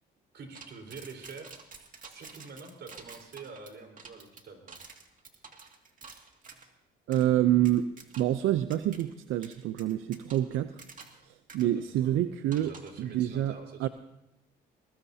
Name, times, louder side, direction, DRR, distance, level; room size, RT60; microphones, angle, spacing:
voice 1, 0.3-1.6 2.0-4.8 11.6-11.7 12.0-12.1 12.5-13.9, right 4 dB, 60° right, 2 dB, 4.5 m, -46 dB
sound 1, 0.5-6.7 7.1-7.3 7.6-8.4 8.7-9.0 9.4-11.2 11.5-11.6 12.5-13.0, right 5 dB, 40° right, 2.3 m, -49 dB
voice 2, 7.1-10.8 11.2-13.9, right 12 dB, 85° right, 11 dB, 0.6 m, -28 dB
22.0 x 21.0 x 2.8 m, 0.90 s
cardioid pair, 90°, 20 cm